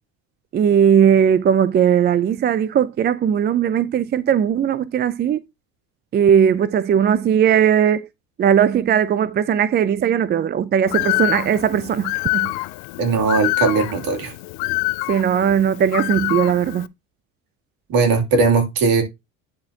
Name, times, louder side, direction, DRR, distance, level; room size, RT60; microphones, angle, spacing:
voice 1, 0.5-5.4 6.1-8.1 8.4-12.5 15.1-16.9, right 8 dB, 25° right, 0.4 m, -18 dB
Bird, 10.9-16.9, left 27 dB, 70° left, 0.5 m, -25 dB
voice 2, 13.0-14.3 17.9-19.0, right 4 dB, 60° right, 2.8 m, -18 dB
10.5 x 4.3 x 2.8 m
supercardioid pair, 90°, 39 cm